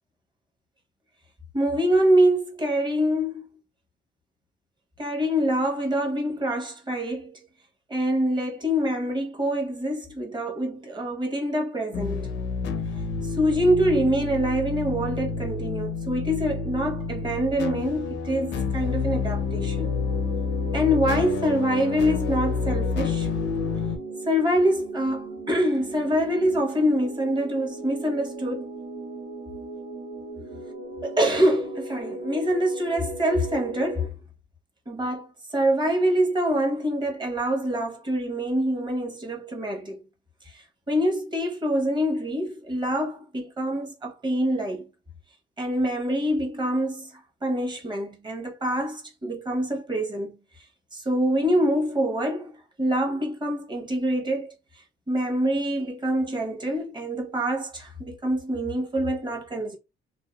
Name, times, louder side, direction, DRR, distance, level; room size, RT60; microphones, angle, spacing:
voice 1, 1.5-3.5 5.0-7.4 7.9-12.3 13.3-19.9 20.7-23.3 24.3-28.7 31.0-34.1 34.9-40.0 40.5-44.9 45.6-47.1 47.4-50.4 50.9-52.5 52.8-54.5 55.1-59.8, equal, 20° right, 0.9 m, -25 dB
sound 1, 11.9-24.0, left 5 dB, 65° left, 0.5 m, -29 dB
sound 2, 19.1-34.1, right 1 dB, 60° right, 0.7 m, -37 dB
2.6 x 2.2 x 2.2 m
cardioid pair, 90°, 20 cm